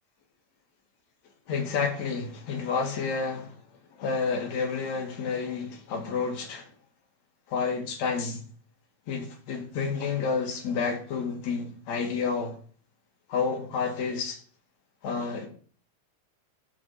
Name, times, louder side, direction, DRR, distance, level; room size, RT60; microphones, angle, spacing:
voice 1, 1.5-3.6 4.0-6.7 7.5-8.4 9.1-12.5 13.3-14.4 15.0-15.5, left 5 dB, 70° left, 3.3 m, -30 dB
7.4 x 6.2 x 7.7 m
omnidirectional pair, 3.3 m